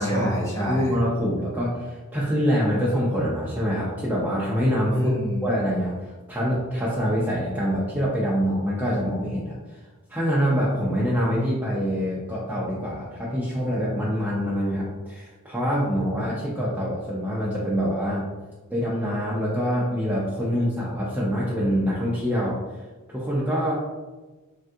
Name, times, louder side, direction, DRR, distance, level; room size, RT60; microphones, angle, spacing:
voice 1, 0.0-1.0 4.9-5.4, equal, 15° left, -5 dB, 0.8 m, -27 dB
voice 2, 0.7-5.1 5.4-9.8 10.1-18.3 18.7-22.6 23.1-23.7, equal, 5° right, -8 dB, 0.4 m, -25 dB
3.4 x 2.3 x 2.6 m, 1.2 s
head